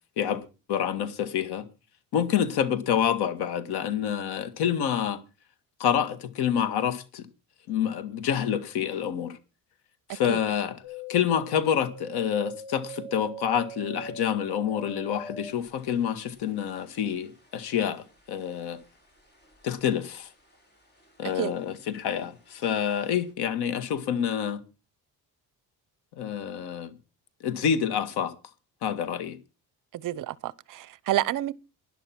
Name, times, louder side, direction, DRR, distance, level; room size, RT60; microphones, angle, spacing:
voice 1, 0.2-1.6 2.1-5.2 5.8-7.3 7.7-9.4 10.1-10.8 11.1-18.8 19.6-20.3 21.2-24.6 26.2-26.9 27.4-28.3 28.8-29.4, left 8 dB, 80° left, 2.0 m, -27 dB
sound 1, 10.8-20.2 20.5-21.4 21.7-22.6 23.0-23.1, right 1 dB, 25° left, 5.6 m, -43 dB
voice 2, 30.0-31.5, right 13 dB, 55° right, 0.8 m, -29 dB
12.0 x 11.0 x 6.0 m
cardioid pair, 145°, 38 cm